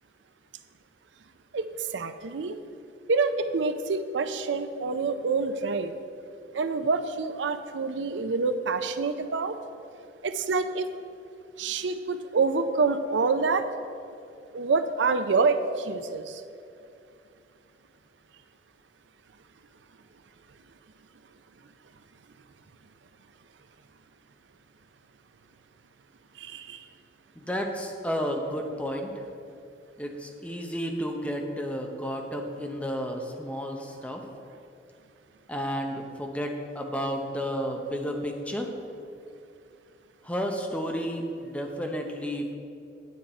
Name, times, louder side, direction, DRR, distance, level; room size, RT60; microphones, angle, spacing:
voice 1, 1.5-2.6 3.1-5.9 6.5-9.6 10.2-10.9 11.6-13.7 14.5-16.4 26.4-26.8, right 4 dB, 80° right, 10 dB, 0.5 m, -27 dB
voice 2, 27.4-29.1 30.0-34.2 35.5-38.7 40.2-42.6, equal, 10° left, 2 dB, 0.7 m, -32 dB
9.3 x 8.6 x 4.3 m, 2.5 s
head